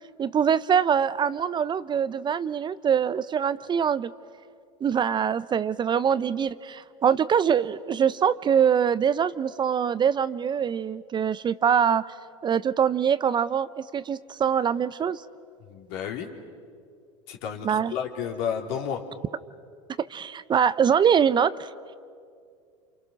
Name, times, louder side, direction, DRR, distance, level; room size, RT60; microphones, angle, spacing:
voice 1, 0.2-4.1 4.8-12.0 12.4-15.2 17.6-17.9 20.0-21.7, right 8 dB, 30° right, 16 dB, 0.6 m, -24 dB
voice 2, 15.7-16.3 17.3-19.0, left 8 dB, 60° left, 2 dB, 3.3 m, -31 dB
28.5 x 28.5 x 6.3 m, 2.3 s
hypercardioid pair, 85°, 16 cm